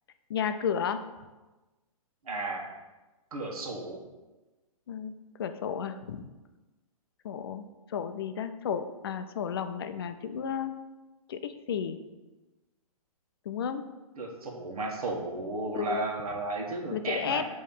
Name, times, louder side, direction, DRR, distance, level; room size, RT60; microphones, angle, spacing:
voice 1, 0.3-1.0 4.9-5.1 5.4-6.2 7.2-10.8 11.3-12.0 13.5-13.9 15.7-16.0 16.9-17.4, left 7 dB, 40° left, 9 dB, 0.4 m, -33 dB
voice 2, 2.2-2.7 3.3-4.0 14.2-17.5, right 2 dB, 80° right, 0 dB, 1.4 m, -34 dB
6.5 x 3.1 x 5.4 m, 1.2 s
hypercardioid pair, 170°, 19 cm